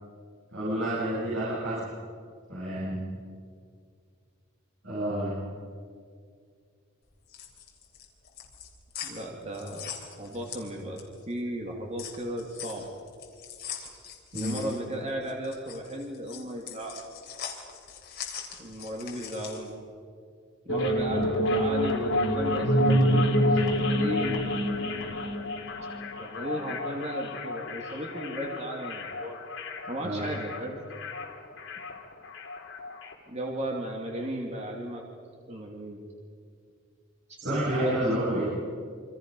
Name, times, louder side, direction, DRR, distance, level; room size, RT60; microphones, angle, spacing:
voice 1, 0.5-1.8 2.5-3.0 4.8-5.3 14.3-14.6 21.1-21.3 30.0-30.2 37.4-38.4, right 1 dB, 65° right, -9 dB, 7.8 m, -29 dB
sound 1, 7.1-11.2 11.6-19.7, left 8 dB, 50° left, 3.6 m, -42 dB
voice 2, 9.0-9.9 10.2-12.8 14.3-17.0 18.6-19.7 20.7-24.5 26.2-29.4 29.9-30.8 33.3-35.0 35.5-36.0 37.3-38.0, right 1 dB, 35° right, 0 dB, 2.5 m, -35 dB
sound 2, 20.7-33.1, equal, 65° left, 3.1 m, -28 dB
28.0 x 25.5 x 5.4 m, 2.2 s
head